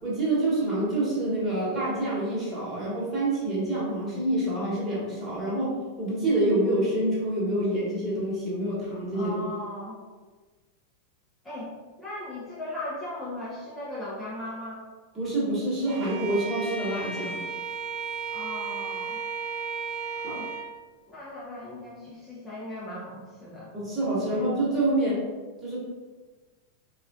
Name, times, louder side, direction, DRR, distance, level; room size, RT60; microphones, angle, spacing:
voice 1, 0.0-9.3 15.1-17.4 20.2-20.4 23.7-25.2 25.6-25.8, right 1 dB, 20° right, -7 dB, 1.4 m, -27 dB
voice 2, 9.1-10.0 11.4-11.7 12.0-14.8 18.3-19.2 20.3-20.5 21.1-23.7 24.2-24.4, left 1 dB, 10° left, -8 dB, 0.7 m, -38 dB
Bowed string instrument, 15.9-20.7, right 5 dB, 45° right, 0.5 m, -34 dB
4.2 x 2.5 x 2.4 m, 1.4 s
figure-of-eight pair, 90°, 0 cm